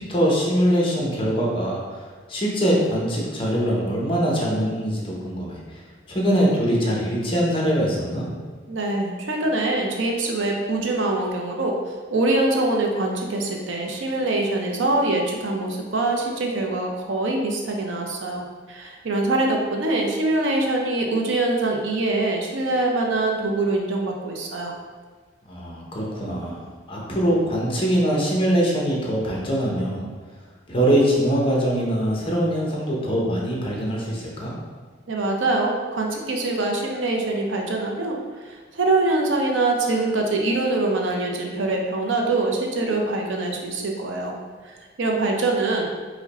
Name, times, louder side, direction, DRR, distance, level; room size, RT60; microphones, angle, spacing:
voice 1, 0.0-5.8 6.1-8.3 25.5-26.6 26.9-30.1 30.7-34.5, equal, 30° left, -3 dB, 0.8 m, -23 dB
voice 2, 8.7-11.8 12.1-24.7 35.1-44.4 44.6-45.8, right 2 dB, 85° right, 1 dB, 0.6 m, -24 dB
4.8 x 2.2 x 4.0 m, 1.5 s
head